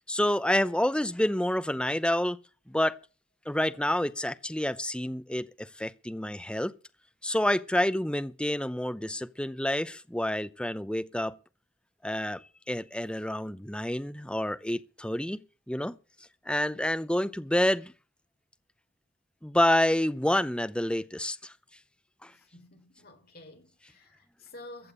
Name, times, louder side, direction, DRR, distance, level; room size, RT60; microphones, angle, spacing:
voice 1, 0.1-2.4 2.7-3.0 3.5-6.7 7.2-11.3 12.0-16.0 16.5-17.9 19.4-21.5 22.2-22.3, left 1 dB, 5° left, 0.6 m, -28 dB
voice 2, 22.2-24.9, left 2 dB, 50° left, 3.8 m, -50 dB
15.0 x 7.3 x 8.5 m
head